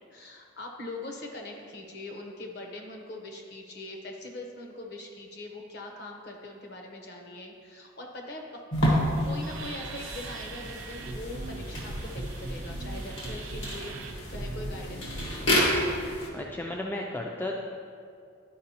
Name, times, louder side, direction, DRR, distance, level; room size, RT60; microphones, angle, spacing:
voice 1, 0.0-15.5, left 2 dB, 55° left, 2 dB, 0.9 m, -42 dB
walking on a squeaky floor, 8.7-16.3, equal, 70° left, 1.6 m, -30 dB
sound 1, 9.2-15.6, right 2 dB, 85° right, 0.6 m, -39 dB
voice 2, 16.3-17.6, left 1 dB, 10° left, 0 dB, 0.3 m, -33 dB
11.5 x 4.7 x 2.9 m, 2.3 s
head